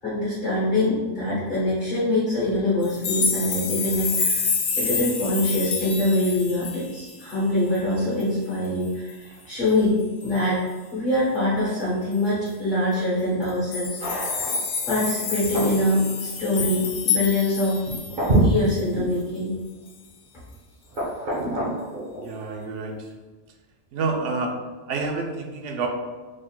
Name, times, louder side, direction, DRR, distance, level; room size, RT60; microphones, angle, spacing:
voice 1, 0.0-4.5 4.8-10.0 10.2-10.6 10.9-14.0 14.9-17.8 18.4-19.5, left 1 dB, 40° left, -10 dB, 1.3 m, -24 dB
sound 1, 2.8-7.4 7.8-7.9 8.2-8.3 8.6-9.1 10.2-10.4 12.1-12.2 12.5-12.6 13.4-18.3 18.8-18.9, left 5 dB, 60° left, 0.7 m, -28 dB
sound 2, 14.0-14.9 15.4-15.8 16.6-16.7 17.8-19.1 19.7-19.8 20.9-22.3, right 1 dB, 50° right, 1.1 m, -26 dB
voice 2, 22.2-22.9 23.9-24.5 24.9-25.9, right 4 dB, 75° right, 2 dB, 0.9 m, -28 dB
3.7 x 3.6 x 2.4 m, 1.3 s
omnidirectional pair, 1.3 m